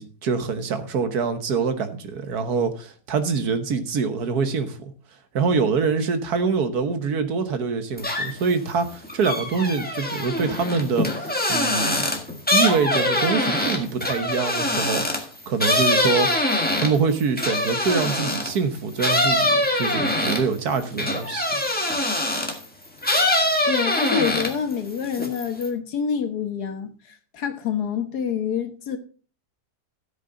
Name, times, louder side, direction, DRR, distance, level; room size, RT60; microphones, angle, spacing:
voice 1, 0.0-4.9 5.3-12.0 12.5-16.3 16.8-21.6, right 5 dB, 70° right, 1.6 m, -25 dB
sound 1, 8.0-8.5 8.9-18.6 19.0-22.6 23.0-24.7 25.0-25.7, left 1 dB, 5° left, 1.4 m, -23 dB
voice 2, 23.7-29.0, left 7 dB, 75° left, 1.8 m, -27 dB
13.5 x 8.1 x 3.9 m
omnidirectional pair, 1.7 m